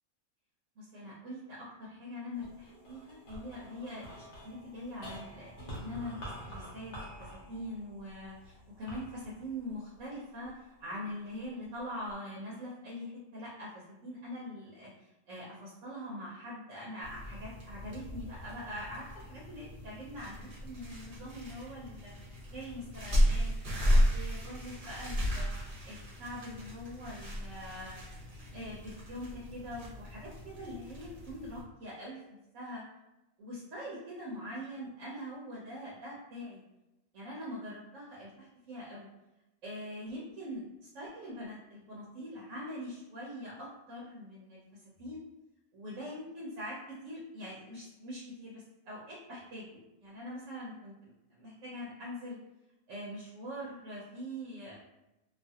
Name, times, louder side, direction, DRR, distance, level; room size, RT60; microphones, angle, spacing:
voice 1, 0.8-22.1 22.5-25.5 25.8-28.0 28.5-32.8 33.4-36.6 37.1-39.1 39.6-40.6 40.9-45.2 45.7-46.8 47.0-52.4 52.9-54.7, equal, 80° right, -5 dB, 1.1 m, -43 dB
sound 1, 2.3-10.8 11.4-12.1, equal, 65° left, 1.1 m, -48 dB
sound 2, 17.0-31.6, equal, 45° right, 1.0 m, -34 dB
2.6 x 2.4 x 2.7 m, 0.95 s
omnidirectional pair, 1.3 m